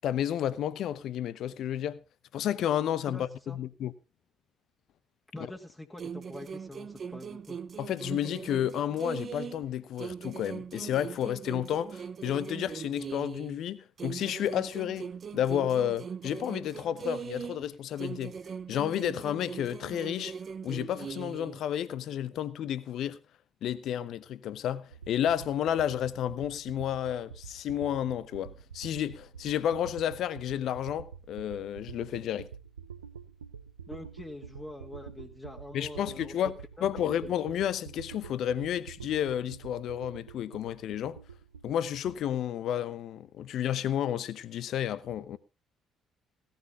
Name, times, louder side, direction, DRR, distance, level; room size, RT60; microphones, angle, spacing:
voice 1, 0.0-2.0 2.3-3.9 7.8-18.3 18.7-20.3 20.6-23.2 23.6-32.5 35.7-41.2 41.6-45.4, left 10 dB, 60° left, 0.8 m, -31 dB
voice 2, 3.1-3.6 5.3-7.6 33.9-36.8 37.2-37.3, left 1 dB, 15° left, 2.0 m, -44 dB
sound 1, 6.0-9.7 10.0-13.6 14.0-17.7 18.0-21.6, right 6 dB, 40° right, 0.8 m, -40 dB
sound 2, 24.9-42.1, right 7 dB, 85° right, 0.7 m, -47 dB
17.5 x 13.0 x 2.9 m
figure-of-eight pair, 50°, 0 cm